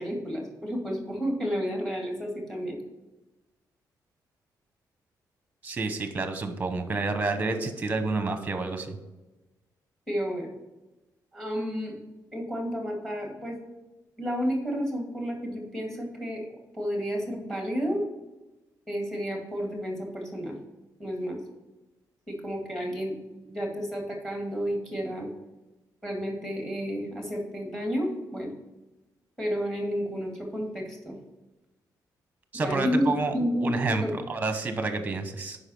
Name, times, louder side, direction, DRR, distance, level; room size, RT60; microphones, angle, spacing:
voice 1, 0.0-2.8 10.1-10.5 11.3-12.0 12.3-13.6 14.2-16.4 16.7-18.0 18.9-20.6 21.0-21.4 22.3-23.2 23.4-25.3 26.0-28.5 29.4-31.2 32.6-34.1, equal, 5° left, 1 dB, 2.0 m, -31 dB
voice 2, 5.6-9.0 32.5-33.3 33.6-35.6, right 3 dB, 20° right, 8 dB, 1.0 m, -29 dB
8.1 x 5.5 x 5.5 m, 1.1 s
cardioid pair, 155°, 7 cm